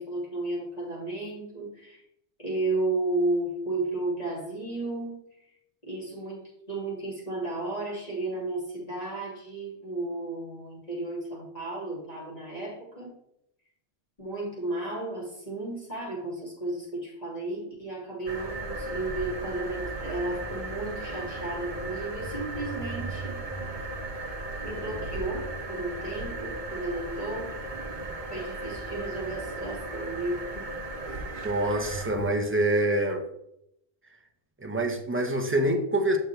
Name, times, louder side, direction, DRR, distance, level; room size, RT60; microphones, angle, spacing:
voice 1, 0.0-2.0 2.4-5.6 5.8-13.1 14.2-23.4 24.6-27.5 28.3-30.7, right 2 dB, 35° left, -7 dB, 2.8 m, -33 dB
sound 1, 18.3-32.3, right 2 dB, 45° right, 1.2 m, -36 dB
voice 2, 31.4-33.2 34.6-36.2, right 1 dB, 10° right, 2 dB, 1.0 m, -26 dB
7.6 x 6.2 x 3.4 m, 0.78 s
omnidirectional pair, 1.1 m